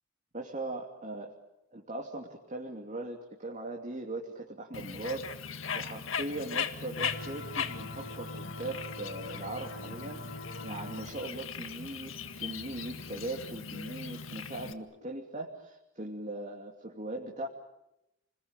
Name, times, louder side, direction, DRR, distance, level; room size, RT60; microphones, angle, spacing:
voice 1, 0.3-1.3 1.7-5.3 5.7-10.2 10.6-17.5, right 2 dB, 40° right, 0 dB, 2.7 m, -39 dB
Bird, 4.7-14.7, left 6 dB, 85° left, 1.8 m, -39 dB
sound 1, 7.0-11.1, left 2 dB, 60° left, 3.4 m, -44 dB
29.5 x 21.5 x 9.1 m, 0.90 s
head